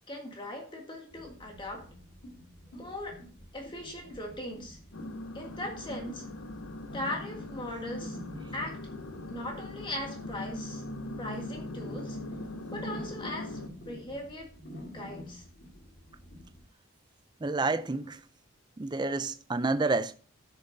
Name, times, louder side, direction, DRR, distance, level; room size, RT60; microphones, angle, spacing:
voice 1, 0.1-1.9 2.7-3.2 3.5-4.8 5.3-6.3 6.9-8.2 8.5-8.8 9.3-10.8 11.2-12.2 12.7-13.6 13.9-14.5 14.9-15.4, left 1 dB, 20° left, 1.6 m, -39 dB
sound 1, 1.1-16.6, left 1 dB, 50° left, 1.9 m, -48 dB
sound 2, 4.9-13.7, left 1 dB, 80° left, 0.9 m, -41 dB
voice 2, 17.4-18.2 18.8-20.1, right 3 dB, 20° right, 0.4 m, -29 dB
13.5 x 6.7 x 2.7 m
head